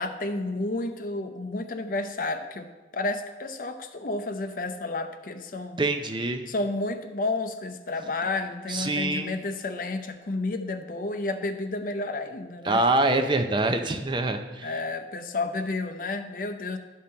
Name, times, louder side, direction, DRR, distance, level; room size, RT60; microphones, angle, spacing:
voice 1, 0.0-2.7 2.9-5.8 6.5-12.8 14.6-16.8, left 2 dB, 50° left, 8 dB, 0.6 m, -31 dB
voice 2, 5.8-6.4 8.7-9.4 12.6-14.7, right 2 dB, 25° right, 6 dB, 0.5 m, -25 dB
12.0 x 5.5 x 4.3 m, 1.3 s
head